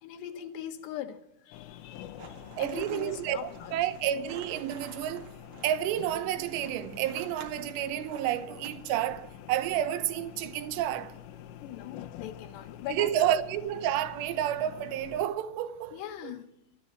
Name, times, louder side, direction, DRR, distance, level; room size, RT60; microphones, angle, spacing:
voice 1, 0.0-3.7 11.6-13.4 15.9-16.5, left 10 dB, 70° left, 3.0 m, -41 dB
sound 1, 1.5-15.3, left 11 dB, 90° left, 3.6 m, -47 dB
sound 2, 2.2-8.7, right 4 dB, 50° right, 1.7 m, -50 dB
voice 2, 2.6-5.3 5.6-11.2 12.9-16.3, right 11 dB, 75° right, 2.8 m, -30 dB
21.0 x 14.0 x 4.5 m
omnidirectional pair, 5.6 m